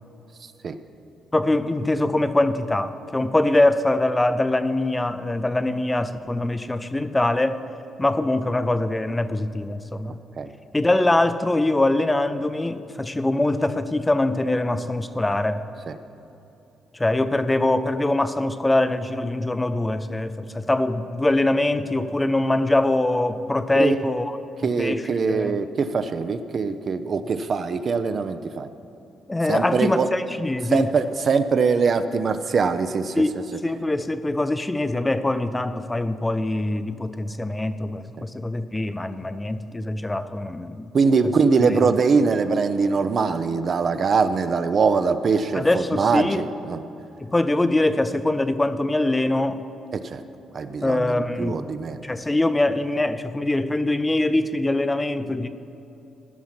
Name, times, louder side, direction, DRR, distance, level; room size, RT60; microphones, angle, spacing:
voice 1, 1.3-7.7 8.0-10.2 10.7-15.7 16.9-24.4 24.8-25.6 29.3-30.9 33.2-40.9 45.5-46.4 47.2-49.6 50.8-51.6 52.0-55.5, left 2 dB, 15° left, 0.5 m, -23 dB
voice 2, 24.6-28.7 29.5-30.1 30.7-33.2 38.2-38.3 40.9-46.8 49.9-50.2 50.5-52.0, right 5 dB, 50° right, 0.5 m, -22 dB
15.5 x 5.7 x 5.9 m
cardioid pair, 90°, 0 cm